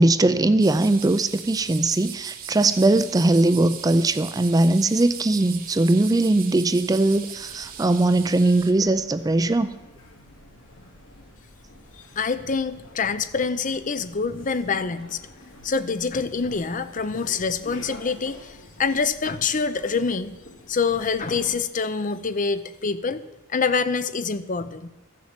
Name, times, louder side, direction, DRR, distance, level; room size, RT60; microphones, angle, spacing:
voice 1, 0.0-9.7, right 2 dB, 20° right, 12 dB, 0.4 m, -20 dB
sound 1, 0.6-8.7, right 9 dB, 45° right, 1.1 m, -39 dB
sound 2, 7.3-21.6, left 1 dB, 80° left, 2.8 m, -47 dB
voice 2, 12.2-15.2 15.6-20.3 20.7-24.9, left 5 dB, 40° left, 13 dB, 0.6 m, -26 dB
13.5 x 7.3 x 7.4 m, 1.0 s
head